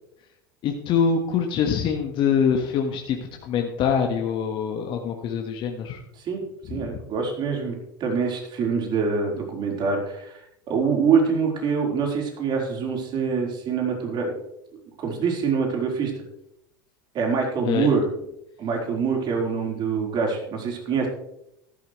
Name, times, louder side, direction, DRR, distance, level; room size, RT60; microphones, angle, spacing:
voice 1, 0.6-6.0 6.7-7.0 17.6-17.9, left 7 dB, 45° left, 2 dB, 1.5 m, -24 dB
voice 2, 6.7-10.4 10.7-14.4 15.0-16.1 17.1-18.1 18.6-21.1, right 5 dB, 45° right, 0 dB, 4.2 m, -25 dB
13.5 x 12.5 x 3.2 m, 0.79 s
hypercardioid pair, 85°, 11 cm